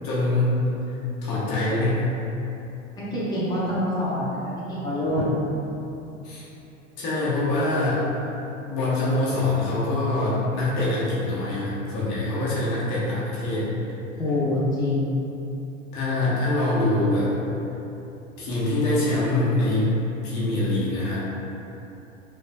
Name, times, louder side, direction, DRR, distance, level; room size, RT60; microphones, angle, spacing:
voice 1, 0.0-0.6 0.9-2.0 6.2-6.4 7.0-8.0 8.7-13.7 15.9-17.3 18.4-19.9 20.2-21.2, left 2 dB, 50° left, -7 dB, 1.1 m, -24 dB
voice 2, 3.0-5.2 14.2-15.1, left 1 dB, 10° left, -9 dB, 0.8 m, -25 dB
5.0 x 2.4 x 2.2 m, 3.0 s
figure-of-eight pair, 80°, 38 cm